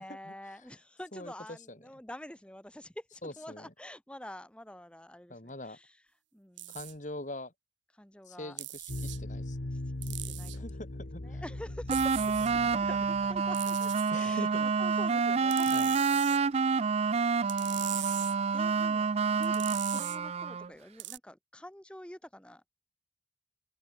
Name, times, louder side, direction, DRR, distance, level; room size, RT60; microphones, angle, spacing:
voice 1, 0.0-6.0 6.3-6.8 7.9-8.6 9.7-10.6 11.2-12.4 12.6-22.6, left 1 dB, 5° left, 1.1 m, -48 dB
voice 2, 1.1-1.8 3.2-3.7 5.3-5.8 6.7-7.5 8.3-9.7 10.5-11.4 14.1-14.7 15.7-15.9, left 1 dB, 40° left, 2.4 m, -43 dB
sound 1, 6.6-6.9 8.6-9.2 10.0-10.6 11.9-12.5 13.5-14.1 15.5-16.4 17.5-18.4 19.4-20.2 21.0-21.2, right 16 dB, 75° right, 1.7 m, -40 dB
sound 2, 8.9-13.9, left 1 dB, 60° left, 1.3 m, -40 dB
sound 3, 11.9-20.7, right 5 dB, 35° right, 0.3 m, -28 dB
open air
head